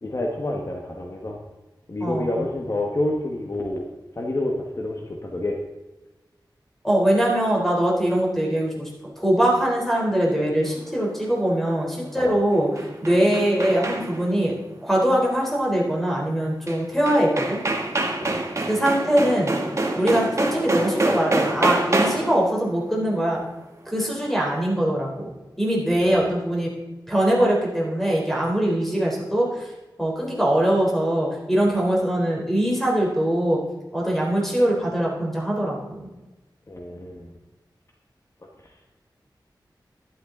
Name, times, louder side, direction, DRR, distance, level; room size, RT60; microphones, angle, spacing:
voice 1, 0.0-1.4 1.9-3.8 4.2-5.6 12.2-12.3 18.2-18.4 25.9-26.1 36.7-37.3, left 1 dB, 40° left, 0 dB, 1.5 m, -28 dB
voice 2, 2.0-2.5 6.8-8.9 9.2-14.6 14.8-17.6 18.6-19.5 20.0-23.4 23.9-25.3 25.6-26.7 27.1-29.7 30.0-33.6 33.9-36.1, right 1 dB, 5° left, -3 dB, 3.7 m, -22 dB
sound 1, 12.5-14.3 16.7-16.8 17.1-22.4, right 2 dB, 40° right, 1.5 m, -25 dB
12.0 x 11.0 x 3.9 m, 1.1 s
wide cardioid pair, 100°, 8 cm